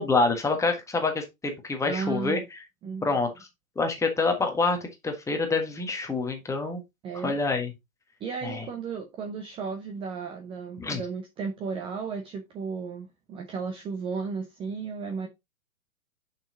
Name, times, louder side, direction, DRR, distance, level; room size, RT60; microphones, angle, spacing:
voice 1, 0.0-2.4 3.0-3.3 3.7-6.8 7.2-7.7 8.4-8.6 10.8-11.0, left 3 dB, 5° left, 1.5 m, -26 dB
voice 2, 1.8-2.4 2.8-3.1 7.0-7.4 8.2-15.3, right 5 dB, 15° right, 0.8 m, -34 dB
6.8 x 5.8 x 3.9 m
figure-of-eight pair, 115°, 42 cm